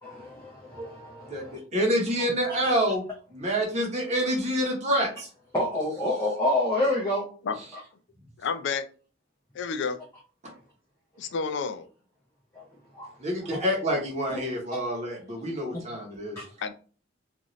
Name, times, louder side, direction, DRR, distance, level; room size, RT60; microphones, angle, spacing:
voice 1, 0.0-1.6 5.5-7.3 7.7-7.8 12.5-12.7 12.9-13.1 13.5-13.6 14.3-14.4 14.7-14.8 16.4-16.5, left 1 dB, 15° left, -6 dB, 0.6 m, -28 dB
voice 2, 1.7-3.0 3.3-5.3 13.2-16.4, equal, 35° right, 0 dB, 0.9 m, -27 dB
voice 3, 8.4-8.9 9.5-10.0 11.2-11.9 16.6-16.7, left 5 dB, 60° left, 9 dB, 0.4 m, -30 dB
2.6 x 2.5 x 3.0 m, 0.38 s
head